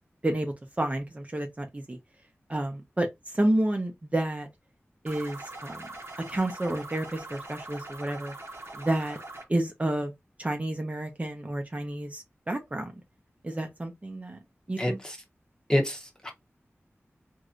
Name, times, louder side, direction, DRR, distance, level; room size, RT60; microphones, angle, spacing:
voice 1, 0.2-2.0 2.5-3.1 3.3-4.5 5.0-5.9 6.3-8.3 8.7-9.2 9.5-10.1 10.4-12.9 13.4-14.4 14.7-15.0, right 1 dB, 30° right, 0.7 m, -30 dB
sound 1, 5.1-9.5, right 2 dB, 65° right, 0.9 m, -42 dB
voice 2, 14.8-15.2 15.7-16.3, left 1 dB, 15° left, 1.0 m, -27 dB
3.2 x 2.6 x 2.4 m
wide cardioid pair, 70°, 5 cm